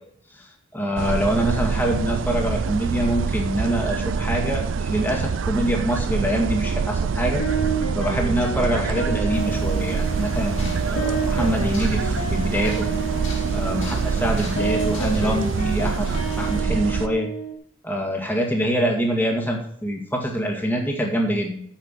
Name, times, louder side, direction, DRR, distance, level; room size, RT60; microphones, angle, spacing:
voice 1, 0.7-7.4 7.9-12.9 13.5-16.1 16.4-17.3 17.8-21.6, equal, 10° left, 1 dB, 2.1 m, -25 dB
sound 1, 1.0-17.1, right 5 dB, 70° right, 0.4 m, -25 dB
sound 2, 7.4-17.5, right 4 dB, 90° left, 2.3 m, -30 dB
sound 3, 9.3-16.6, left 1 dB, 65° left, 2.5 m, -37 dB
9.0 x 7.5 x 7.5 m, 0.65 s
head